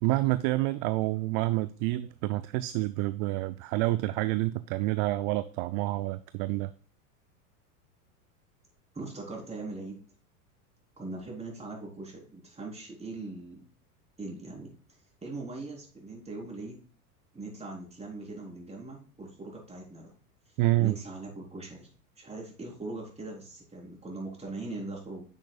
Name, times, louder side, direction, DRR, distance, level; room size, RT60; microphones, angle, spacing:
voice 1, 0.0-6.7 20.6-21.0, right 18 dB, 40° right, 14 dB, 0.5 m, -28 dB
voice 2, 8.9-10.0 11.0-13.7 14.2-14.7 15.2-16.8 17.3-20.1 20.8-21.9 22.2-25.2, right 2 dB, 15° right, -2 dB, 4.0 m, -40 dB
10.5 x 6.4 x 2.4 m, 0.41 s
hypercardioid pair, 95°, 46 cm